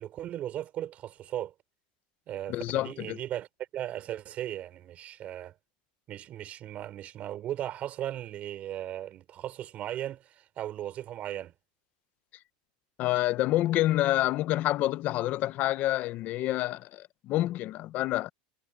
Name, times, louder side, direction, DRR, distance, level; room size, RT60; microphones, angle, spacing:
voice 1, 0.0-1.5 2.3-3.5 3.7-5.5 6.1-11.5, right 12 dB, 35° right, 4.0 m, -37 dB
voice 2, 2.5-3.2 13.0-18.3, left 15 dB, 40° left, 0.8 m, -28 dB
supercardioid pair, 145°, 4 cm